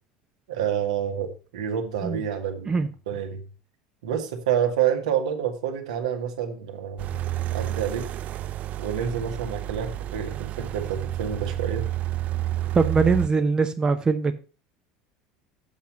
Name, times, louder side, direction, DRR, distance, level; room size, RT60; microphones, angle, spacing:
voice 1, 0.5-2.7 3.1-3.4 4.0-7.1 7.5-8.1 8.8-11.9, right 8 dB, 75° right, 1.5 m, -28 dB
sound 1, 7.0-13.3, right 13 dB, 45° right, 0.4 m, -30 dB
voice 2, 12.7-14.4, right 4 dB, 20° right, 0.8 m, -22 dB
7.7 x 5.8 x 5.3 m
hypercardioid pair, 80°, 4 cm